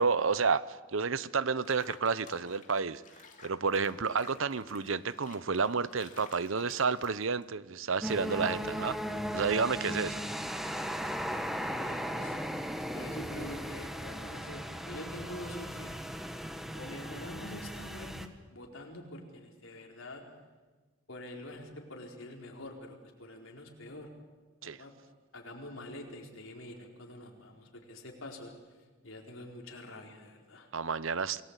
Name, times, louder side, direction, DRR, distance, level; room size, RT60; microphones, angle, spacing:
voice 1, 0.0-3.0 3.4-9.0 9.3-10.2 24.6-24.8 30.7-31.4, right 5 dB, 80° right, 17 dB, 0.8 m, -30 dB
Water / Bathtub (filling or washing), 1.6-7.6, left 5 dB, 40° left, 2.7 m, -55 dB
sound 1, 8.0-18.3, equal, ahead, 1.3 m, -37 dB
voice 2, 10.8-12.4 12.9-16.0 16.7-18.1 18.5-20.2 21.1-24.1 24.6-24.9 25.3-28.5 29.0-30.7, left 1 dB, 85° left, 1 dB, 4.3 m, -46 dB
28.0 x 19.0 x 8.2 m, 1.3 s
head